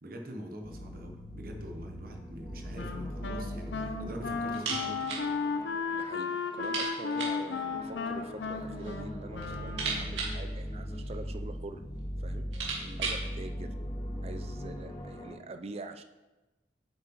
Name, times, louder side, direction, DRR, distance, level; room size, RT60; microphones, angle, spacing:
voice 1, 0.0-5.0 12.8-13.1, equal, 55° right, 3 dB, 1.0 m, -44 dB
sound 1, 0.6-15.3, equal, 25° left, 0.9 m, -40 dB
Wind instrument woodwind instrument, 2.8-10.2, left 5 dB, 75° left, 0.6 m, -35 dB
sound 2, 4.5-5.3 5.6-5.7 6.0-6.1 6.6-7.5 8.4-9.0 9.3-11.3 12.0-12.1 12.3-13.3, right 4 dB, 85° right, 2.1 m, -37 dB
voice 2, 5.9-11.8 12.2-12.4 13.0-13.8 14.2-16.0, right 2 dB, 35° right, 8 dB, 0.5 m, -45 dB
7.6 x 7.5 x 3.0 m, 1.1 s
head